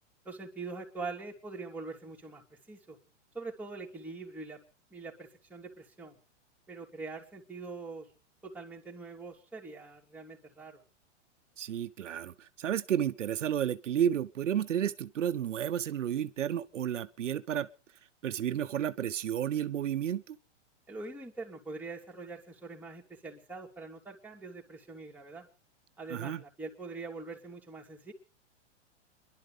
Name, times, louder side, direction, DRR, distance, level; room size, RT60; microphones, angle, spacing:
voice 1, 0.2-3.0 3.3-4.6 4.9-6.2 6.7-8.1 8.4-10.8 20.9-25.5 26.0-28.1, right 3 dB, 5° right, 3.0 m, -43 dB
voice 2, 11.6-17.7 18.2-20.4 26.1-26.4, right 9 dB, 90° right, 0.9 m, -32 dB
28.5 x 12.0 x 3.4 m
hypercardioid pair, 125°, 36 cm